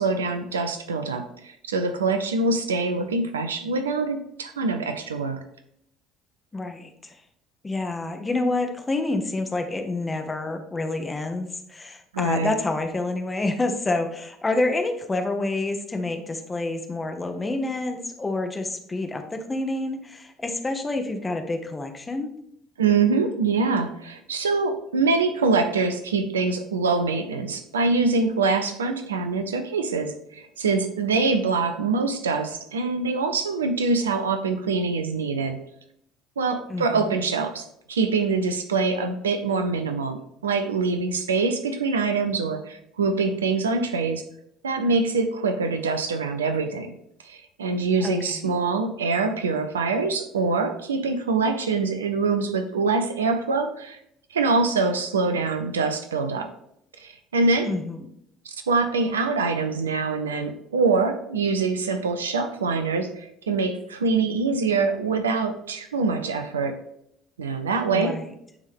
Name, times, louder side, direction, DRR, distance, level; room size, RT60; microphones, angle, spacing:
voice 1, 0.0-5.4 12.1-12.5 22.8-35.6 36.4-44.2 44.6-47.0 47.2-54.0 54.3-56.5 57.0-57.7 58.4-66.8 67.4-68.2, right 4 dB, 85° right, 7 dB, 0.5 m, -24 dB
voice 2, 6.5-7.2 7.6-22.3 36.7-37.1 48.0-48.5 57.7-58.0 67.9-68.2, left 2 dB, 20° left, 5 dB, 1.0 m, -28 dB
9.4 x 3.5 x 3.6 m, 0.74 s
hypercardioid pair, 60°, 0 cm